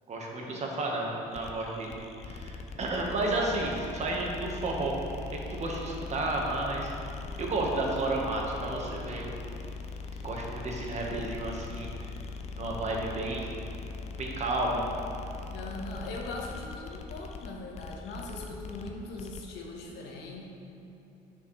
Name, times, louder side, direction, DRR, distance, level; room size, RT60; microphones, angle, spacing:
voice 1, 0.1-2.0 2.2-4.9 5.5-6.9 7.4-9.3 10.2-11.9 12.5-13.4 14.2-14.9, right 2 dB, 40° right, -1 dB, 1.3 m, -32 dB
sound 1, 1.3-19.5, left 4 dB, 40° left, 0.5 m, -41 dB
voice 2, 15.5-20.5, left 2 dB, 80° left, -1 dB, 1.1 m, -40 dB
8.3 x 6.0 x 3.2 m, 3.0 s
cardioid pair, 110°, 17 cm